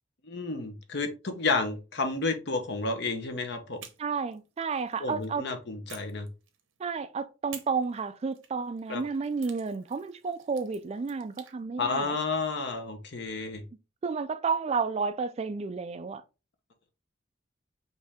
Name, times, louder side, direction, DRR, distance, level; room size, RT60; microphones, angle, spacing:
voice 1, 0.2-3.8 5.0-6.3 8.9-9.0 11.8-13.6, left 3 dB, 60° left, 0.9 m, -31 dB
sound 1, 3.8-5.3 5.9-6.9 7.5-11.6, right 9 dB, 80° right, 1.0 m, -51 dB
voice 2, 4.0-5.5 6.8-12.1 14.0-16.2, right 5 dB, 30° right, 0.3 m, -31 dB
5.4 x 2.7 x 3.5 m
head